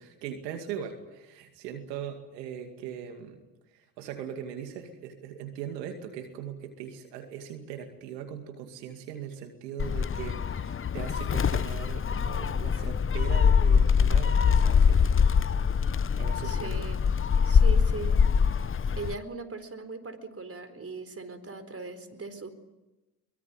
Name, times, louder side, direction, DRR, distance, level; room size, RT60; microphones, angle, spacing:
voice 1, 0.0-3.4 3.7-15.2 16.2-16.9, right 8 dB, 85° right, 6 dB, 2.4 m, -40 dB
Gull seagull, 9.8-19.1, left 6 dB, 25° left, 0.8 m, -24 dB
voice 2, 16.4-17.1 17.4-22.5, right 4 dB, 30° right, 10 dB, 4.2 m, -40 dB
23.5 x 22.5 x 9.6 m, 1.0 s
hypercardioid pair, 55°, 48 cm